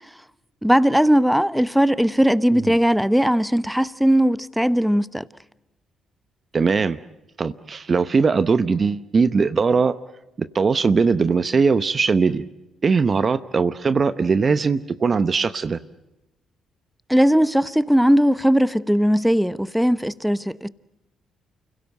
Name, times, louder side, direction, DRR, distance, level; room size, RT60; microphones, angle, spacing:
voice 1, 0.6-5.3 17.1-20.7, equal, ahead, 0.9 m, -18 dB
voice 2, 6.5-7.0 7.4-9.9 10.5-12.4 12.8-15.8, right 5 dB, 45° right, 0.9 m, -20 dB
29.5 x 16.5 x 8.1 m
hypercardioid pair, 45°, 0 cm